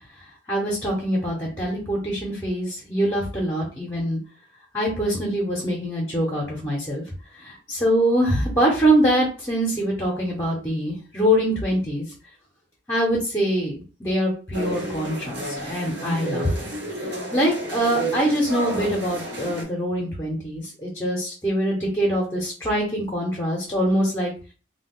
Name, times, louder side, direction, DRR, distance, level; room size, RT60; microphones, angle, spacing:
voice 1, 0.5-4.2 4.7-7.0 7.3-12.1 12.9-16.7 17.1-24.3, equal, 15° left, -4 dB, 0.8 m, -24 dB
sound 1, 14.5-19.6, right 1 dB, 65° right, 1.0 m, -31 dB
2.3 x 2.2 x 3.7 m, 0.35 s
head